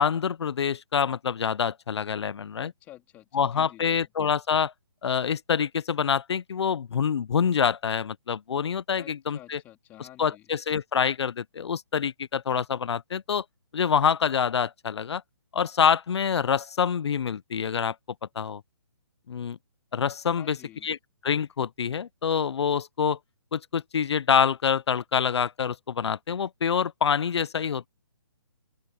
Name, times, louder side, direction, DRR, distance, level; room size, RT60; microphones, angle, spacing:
voice 1, 0.0-2.7 3.3-4.7 5.0-9.6 10.0-13.4 13.7-15.2 15.5-18.0 18.4-18.6 19.3-19.6 19.9-20.6 20.8-21.0 21.2-23.2 23.5-27.9, left 7 dB, 85° left, 0.5 m, -26 dB
voice 2, 2.6-4.0 9.0-10.4 20.4-20.9, left 14 dB, 10° left, 2.9 m, -50 dB
open air
hypercardioid pair, 175°, 14 cm